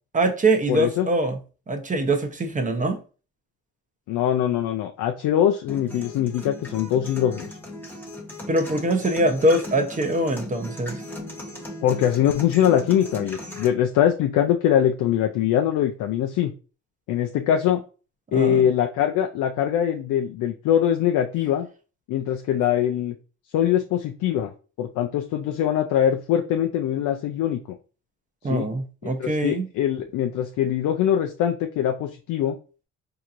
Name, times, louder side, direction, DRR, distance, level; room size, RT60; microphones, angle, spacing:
voice 1, 0.1-1.4 1.7-3.0 8.5-11.0 18.3-18.6 28.4-29.7, right 1 dB, 25° right, 0.8 m, -23 dB
voice 2, 0.7-1.1 4.1-7.5 11.8-16.5 17.1-17.8 18.3-21.7 22.1-23.1 23.5-24.5 24.8-27.6 28.5-28.7 29.0-32.6, left 10 dB, 85° left, 0.5 m, -22 dB
sound 1, 5.7-13.7, left 1 dB, 5° left, 0.9 m, -37 dB
4.4 x 2.8 x 2.5 m
cardioid pair, 90°, 30 cm